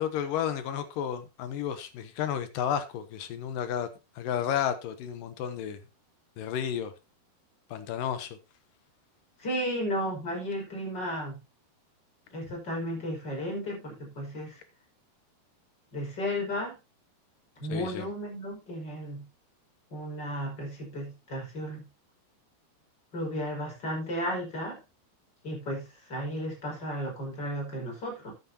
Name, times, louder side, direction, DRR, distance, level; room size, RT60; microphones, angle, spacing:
voice 1, 0.0-3.9 4.2-5.8 6.4-6.9 7.7-8.4 17.7-18.1, left 9 dB, 70° left, 2.2 m, -32 dB
voice 2, 9.4-11.4 12.3-14.6 15.9-16.8 17.6-19.2 19.9-21.9 23.1-24.8 25.4-28.3, equal, 25° left, 5.6 m, -34 dB
13.5 x 9.4 x 2.8 m
omnidirectional pair, 4.7 m